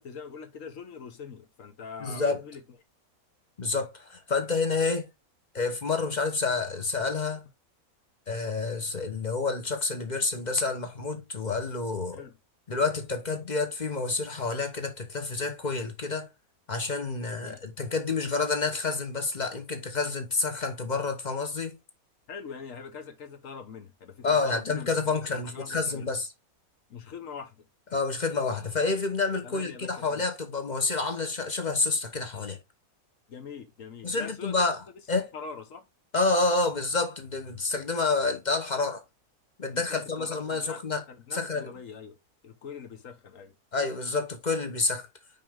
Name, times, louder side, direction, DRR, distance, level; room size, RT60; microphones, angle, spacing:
voice 1, 0.0-2.6 12.1-12.4 17.4-17.6 22.3-26.1 26.9-27.7 29.4-30.2 33.3-34.6 35.1-35.9 39.7-40.8 41.1-42.2 42.4-43.5, left 6 dB, 60° left, 1.3 m, -43 dB
voice 2, 2.0-2.4 3.6-5.1 5.5-7.5 8.3-12.2 12.7-16.3 16.7-21.8 24.2-26.3 27.9-32.6 34.0-34.8 35.1-35.3 36.1-39.0 39.6-41.0 41.3-41.7 43.7-45.1, left 3 dB, 35° left, 1.0 m, -28 dB
5.5 x 5.2 x 3.5 m
omnidirectional pair, 1.6 m